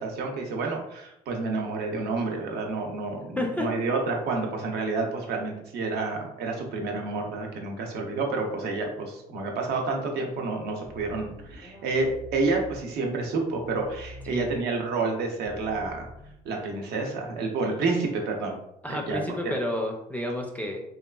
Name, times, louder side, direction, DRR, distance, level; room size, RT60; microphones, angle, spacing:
voice 1, 0.0-16.1 16.4-18.6 18.9-19.2 19.4-19.5, right 3 dB, 75° right, 2 dB, 0.6 m, -29 dB
voice 2, 3.4-3.7 14.3-14.5 18.8-20.8, left 1 dB, 10° left, 1 dB, 0.3 m, -30 dB
sound 1, 10.8-12.8 13.2-14.6 15.0-16.6, left 1 dB, 90° left, 0.8 m, -45 dB
2.9 x 2.4 x 2.2 m, 0.81 s
cardioid pair, 110°, 17 cm